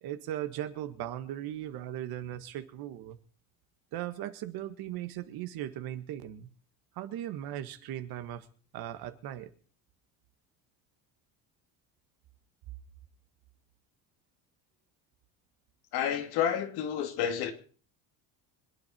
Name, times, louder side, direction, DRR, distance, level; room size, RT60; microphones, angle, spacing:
voice 1, 0.0-3.2 3.9-6.5 7.0-8.5 8.7-9.5, right 12 dB, 70° right, 1.8 m, -38 dB
voice 2, 15.9-17.5, left 9 dB, 75° left, 2.6 m, -30 dB
25.5 x 9.3 x 4.5 m
cardioid pair, 115°, 38 cm